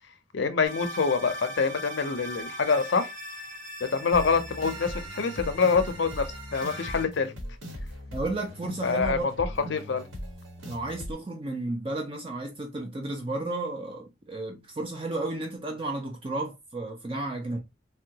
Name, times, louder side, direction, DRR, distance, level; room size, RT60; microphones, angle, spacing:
voice 1, 0.3-3.1 3.9-7.3 8.8-10.1, left 5 dB, 65° left, 0.5 m, -26 dB
sound 1, 0.6-7.1, equal, 45° right, 1.0 m, -40 dB
sound 2, 4.1-11.1, left 1 dB, 80° right, 1.1 m, -39 dB
voice 2, 8.1-9.2 10.7-17.6, right 2 dB, 25° right, 0.4 m, -33 dB
3.6 x 2.2 x 2.8 m
head